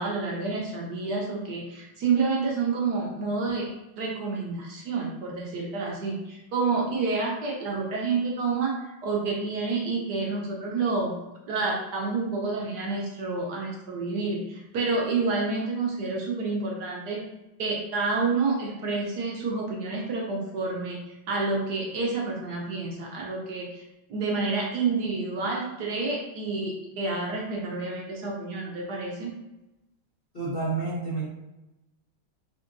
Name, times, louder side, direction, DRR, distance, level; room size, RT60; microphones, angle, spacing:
voice 1, 0.0-3.7 4.0-8.7 9.0-11.1 11.5-17.2 17.6-23.8 24.1-29.3, right 4 dB, 65° right, -2 dB, 1.1 m, -29 dB
voice 2, 30.3-31.3, right 3 dB, 85° left, -6 dB, 0.4 m, -29 dB
4.3 x 3.7 x 2.6 m, 0.97 s
omnidirectional pair, 2.3 m